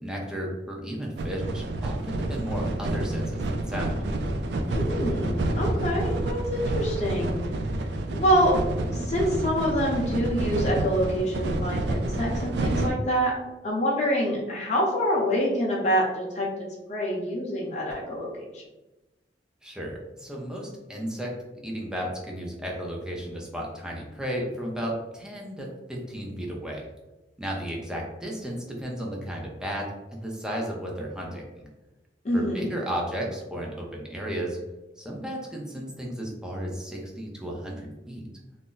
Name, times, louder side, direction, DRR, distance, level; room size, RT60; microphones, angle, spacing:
voice 1, 0.0-3.9 19.6-21.3 21.6-26.8 27.4-31.7 32.3-34.6 35.0-38.2, equal, 5° right, -2 dB, 0.5 m, -34 dB
sound 1, 1.2-12.9, right 1 dB, 70° right, 0.3 m, -29 dB
voice 2, 4.7-7.4 8.1-13.3 13.6-16.5 16.9-18.6 32.2-32.7, equal, 40° left, -4 dB, 0.7 m, -26 dB
2.5 x 2.0 x 3.8 m, 1.0 s
head